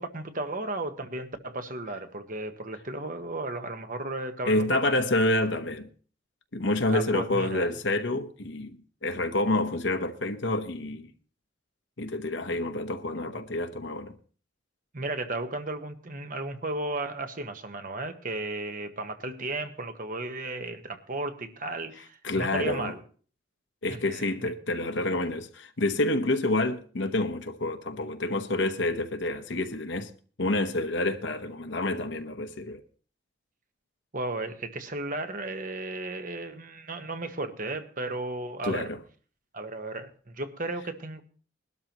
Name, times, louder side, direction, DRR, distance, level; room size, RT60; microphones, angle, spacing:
voice 1, 0.0-5.0 6.9-7.7 14.9-23.0 23.9-24.5 34.1-38.9 39.5-41.2, right 2 dB, 45° right, 1.2 m, -34 dB
voice 2, 4.4-5.9 6.5-11.1 12.0-14.1 22.2-22.9 23.8-30.1 30.4-32.8 38.6-39.0, left 2 dB, 70° left, 1.0 m, -28 dB
21.0 x 12.5 x 3.0 m
head